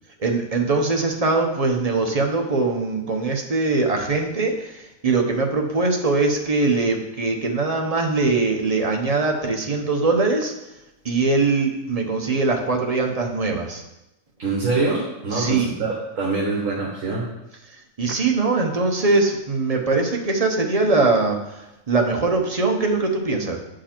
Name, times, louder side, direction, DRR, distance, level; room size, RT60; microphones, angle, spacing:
voice 1, 0.2-10.5 11.0-13.8 15.3-15.7 18.0-23.6, right 3 dB, 30° right, 2 dB, 0.8 m, -22 dB
voice 2, 14.4-17.3, right 3 dB, 65° right, -4 dB, 1.6 m, -24 dB
8.3 x 5.0 x 4.4 m, 0.92 s
omnidirectional pair, 1.5 m